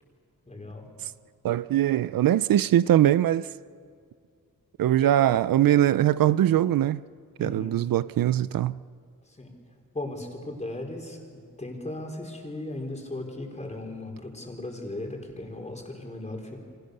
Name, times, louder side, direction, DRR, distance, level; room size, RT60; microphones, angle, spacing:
voice 1, 0.5-0.9 5.0-5.1 7.4-7.8 9.2-16.6, left 2 dB, 20° left, 4.6 m, -37 dB
voice 2, 1.4-3.5 4.8-7.0 7.4-8.8, right 12 dB, 80° right, 0.5 m, -22 dB
30.0 x 24.5 x 6.7 m
wide cardioid pair, 110°, 34 cm